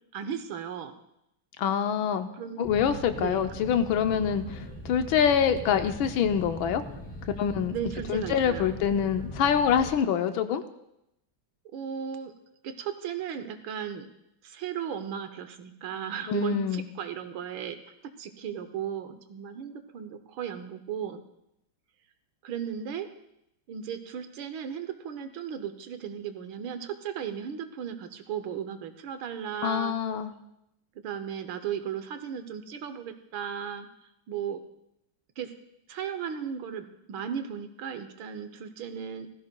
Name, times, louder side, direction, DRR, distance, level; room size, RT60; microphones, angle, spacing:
voice 1, 0.1-0.9 2.3-2.7 3.2-3.4 7.7-8.7 11.7-12.3 12.6-14.1 14.4-21.2 22.4-23.1 23.7-30.0 30.9-33.9 34.3-34.6 35.4-35.5 35.9-39.3, right 8 dB, 80° right, 9 dB, 1.6 m, -36 dB
voice 2, 1.6-2.3 2.6-6.8 7.4-7.7 8.1-10.6 16.3-16.9 29.6-30.3, left 8 dB, 80° left, 8 dB, 1.5 m, -25 dB
sound 1, 2.6-9.9, equal, 5° left, 2.1 m, -40 dB
17.0 x 14.5 x 2.3 m, 0.82 s
omnidirectional pair, 2.3 m